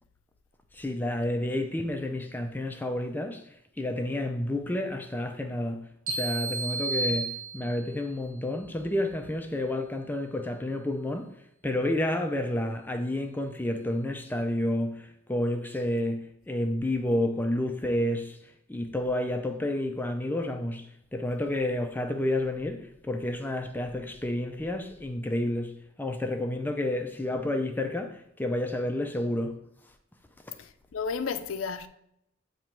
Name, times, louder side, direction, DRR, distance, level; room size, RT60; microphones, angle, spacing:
voice 1, 0.7-3.4 3.8-5.8 6.1-11.3 11.6-18.4 18.7-25.7 26.0-29.5, left 1 dB, 10° left, 0.3 m, -30 dB
sound 1, 6.1-8.0, right 3 dB, 80° right, 1.1 m, -32 dB
voice 2, 30.6-31.9, left 5 dB, 75° left, 0.4 m, -33 dB
7.4 x 2.9 x 4.4 m
head